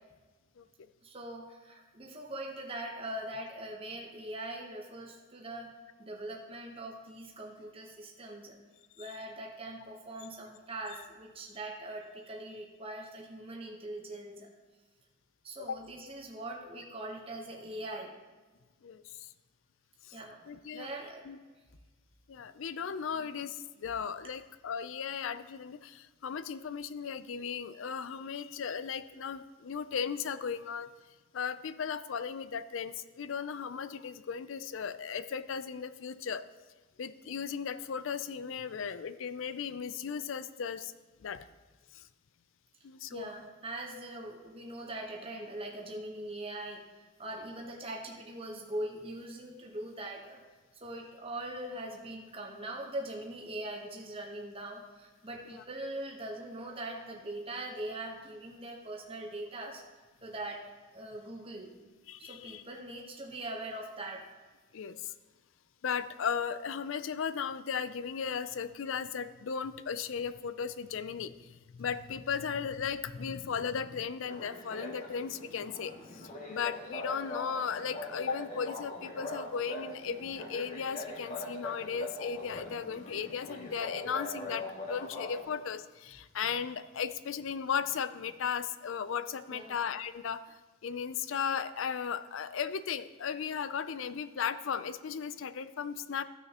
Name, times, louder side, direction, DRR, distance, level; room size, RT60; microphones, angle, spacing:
voice 1, 1.0-5.7 6.0-8.6 9.0-14.5 15.4-18.1 20.1-20.4 20.7-21.2 23.1-23.3 43.1-46.8 47.2-50.4 50.8-59.8 60.2-61.7 62.2-64.3 89.5-89.8, right 1 dB, 25° right, -1 dB, 1.0 m, -41 dB
voice 2, 18.8-19.3 20.0-20.2 20.5-20.9 21.2-21.4 22.3-30.9 31.3-36.4 37.0-40.9 41.2-41.5 41.9-42.0 42.8-43.3 55.5-55.6 62.1-62.6 64.7-65.1 65.8-90.4 90.8-96.2, left 6 dB, 65° left, 12 dB, 0.4 m, -36 dB
sound 1, 74.2-85.5, left 2 dB, 40° left, 1.6 m, -42 dB
15.0 x 6.3 x 2.9 m, 1.3 s
head